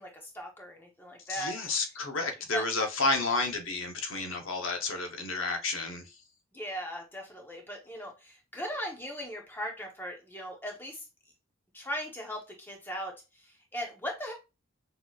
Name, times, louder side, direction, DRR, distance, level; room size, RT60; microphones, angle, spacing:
voice 1, 0.0-1.8 2.5-2.6 4.3-4.4 6.5-11.1 11.7-14.3, equal, 10° left, 0.9 m, -39 dB
voice 2, 1.3-6.1, left 3 dB, 75° left, 0.9 m, -31 dB
6.2 x 2.8 x 2.4 m
head